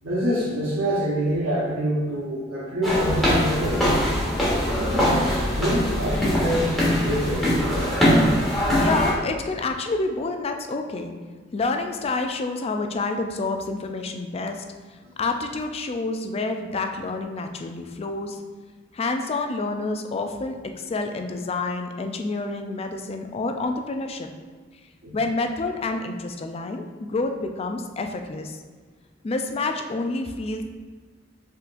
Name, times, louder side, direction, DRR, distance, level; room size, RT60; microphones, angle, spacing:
voice 1, 0.0-3.9 4.8-7.5 15.0-15.1 25.0-25.2, equal, 85° right, -6 dB, 0.8 m, -26 dB
sound 1, 2.8-9.1, equal, ahead, 1.2 m, -22 dB
voice 2, 8.8-11.1 11.5-14.6 15.2-18.4 18.9-24.3 25.1-28.6 29.2-30.6, left 3 dB, 30° left, 5 dB, 0.3 m, -28 dB
5.5 x 3.7 x 2.5 m, 1.5 s
head